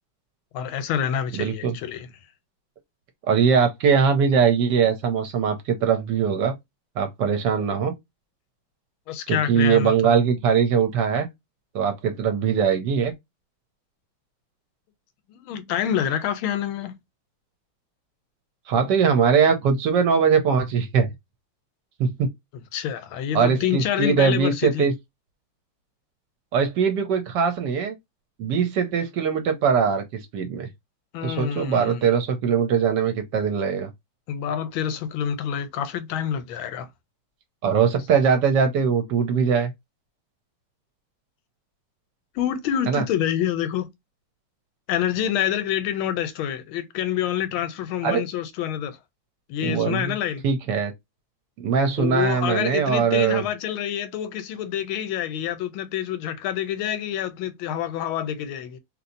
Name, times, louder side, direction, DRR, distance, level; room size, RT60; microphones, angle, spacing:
voice 1, 0.5-2.1 9.1-10.1 15.3-17.0 22.7-24.9 31.1-32.0 34.3-36.9 42.3-43.9 44.9-49.0 49.5-50.4 52.0-58.8, left 10 dB, 85° left, 1.4 m, -27 dB
voice 2, 1.3-1.7 3.3-6.5 7.0-7.9 9.3-11.3 11.7-13.1 18.7-21.1 22.0-22.3 23.3-24.9 26.5-27.9 28.4-30.7 31.2-33.9 37.6-39.7 42.9-43.0 48.0-48.2 49.6-50.1 50.4-50.9 51.6-53.4, right 6 dB, 70° right, 1.1 m, -21 dB
3.0 x 2.9 x 2.6 m
omnidirectional pair, 2.2 m